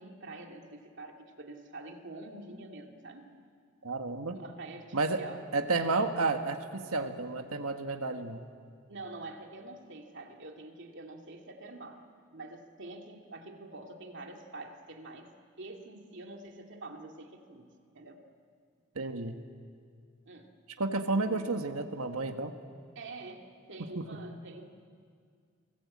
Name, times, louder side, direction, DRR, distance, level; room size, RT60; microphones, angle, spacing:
voice 1, 0.0-3.3 4.3-5.4 8.9-12.0 12.3-15.3 15.6-18.2 20.3-20.5 21.2-21.4 23.0-24.7, right 2 dB, 55° right, 3 dB, 2.4 m, -46 dB
voice 2, 3.8-4.4 4.9-5.2 5.5-8.4 18.9-19.4 20.8-22.5 23.9-24.2, right 3 dB, 80° right, 5 dB, 1.4 m, -31 dB
29.5 x 19.0 x 8.6 m, 2.2 s
head